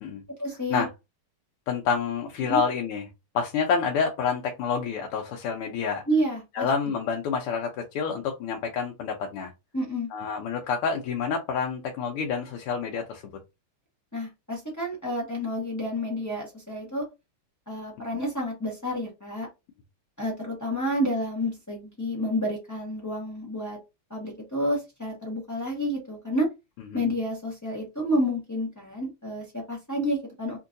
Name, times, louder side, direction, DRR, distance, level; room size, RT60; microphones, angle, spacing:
voice 1, 0.4-0.8 2.4-2.6 6.1-6.7 9.7-10.1 14.1-17.0 17.7-19.5 20.2-23.8 24.1-26.5 26.9-30.6, equal, 25° left, 0.4 m, -29 dB
voice 2, 1.7-3.0 3.3-6.0 6.5-9.5 10.1-13.2 26.9-27.0, left 6 dB, 90° left, 1.5 m, -28 dB
3.7 x 2.6 x 2.5 m
omnidirectional pair, 2.4 m